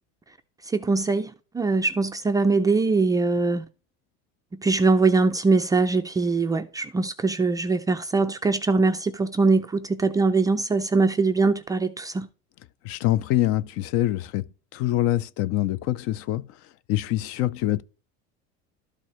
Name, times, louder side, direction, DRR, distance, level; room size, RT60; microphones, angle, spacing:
voice 1, 0.7-3.6 4.5-12.3, right 3 dB, 15° right, 0.3 m, -22 dB
voice 2, 12.8-14.5 14.7-16.4 16.9-17.8, left 14 dB, 50° left, 0.5 m, -24 dB
12.5 x 4.4 x 3.1 m
supercardioid pair, 135°, 29 cm